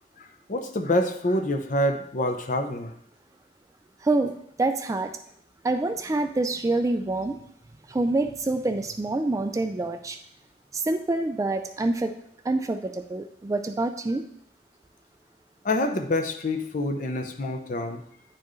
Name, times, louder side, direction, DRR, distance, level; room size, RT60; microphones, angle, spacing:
voice 1, 0.2-2.9 15.6-18.0, left 1 dB, 45° left, 6 dB, 0.6 m, -27 dB
voice 2, 4.0-5.1 5.6-7.4 7.9-10.2 10.7-12.1 12.4-14.2, right 2 dB, 20° right, 7 dB, 0.3 m, -26 dB
9.5 x 4.4 x 3.1 m, 0.69 s
head